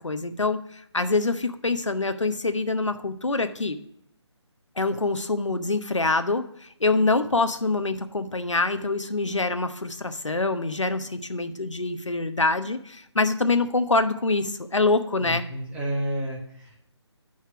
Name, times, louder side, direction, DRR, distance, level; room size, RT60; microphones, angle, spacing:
voice 1, 0.0-3.8 4.8-15.4, left 3 dB, 90° left, 9 dB, 1.0 m, -25 dB
voice 2, 15.2-16.8, equal, 10° right, -2 dB, 1.5 m, -31 dB
10.5 x 4.5 x 5.9 m, 0.70 s
figure-of-eight pair, 155°, 15 cm